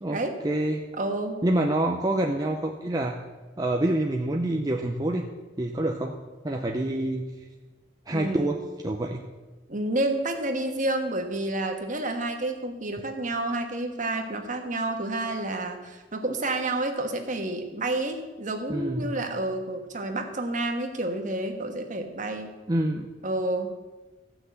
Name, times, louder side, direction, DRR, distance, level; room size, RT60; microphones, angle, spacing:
voice 1, 0.0-0.8 1.4-3.2 3.6-5.3 5.6-6.2 6.4-7.3 8.1-9.2 18.7-19.2 22.7-23.1, right 1 dB, 20° right, 2 dB, 0.7 m, -27 dB
voice 2, 1.0-1.4 8.1-8.5 9.7-22.5 23.2-23.7, right 2 dB, 40° right, 4 dB, 1.4 m, -29 dB
14.5 x 6.0 x 8.0 m, 1.2 s
head